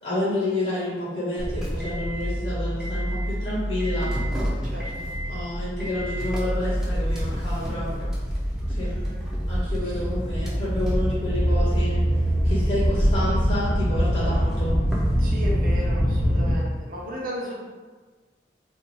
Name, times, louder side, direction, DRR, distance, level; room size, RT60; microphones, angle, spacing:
voice 1, 0.0-4.1 5.3-8.1 8.7-8.9 9.5-12.0 12.4-14.8, left 1 dB, 40° left, -8 dB, 0.6 m, -29 dB
sound 1, 1.4-16.6, equal, 5° right, 0.4 m, -25 dB
voice 2, 4.6-5.1 8.8-9.2 9.8-10.0 15.2-17.6, equal, 50° right, -4 dB, 0.6 m, -36 dB
2.5 x 2.2 x 3.0 m, 1.4 s
head